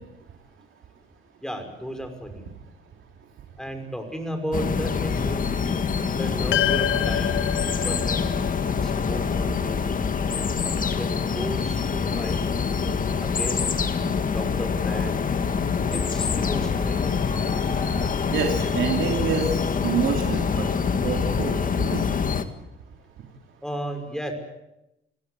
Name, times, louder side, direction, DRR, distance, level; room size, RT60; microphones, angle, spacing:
voice 1, 1.4-2.5 3.6-5.5 6.2-8.2 8.6-9.8 10.3-10.5 11.0-12.5 13.2-13.7 14.3-15.2 15.9-17.2 23.6-24.3, equal, 5° left, 6 dB, 5.7 m, -34 dB
sound 1, 4.5-22.4, left 6 dB, 45° left, 1.9 m, -25 dB
sound 2, 6.5-11.0, left 11 dB, 70° left, 1.2 m, -29 dB
sound 3, 13.5-19.1, left 2 dB, 25° left, 6.1 m, -43 dB
voice 2, 18.3-20.7 21.0-22.0, right 6 dB, 75° right, 2 dB, 3.2 m, -27 dB
26.5 x 17.0 x 8.2 m, 0.89 s
cardioid pair, 90°, 20 cm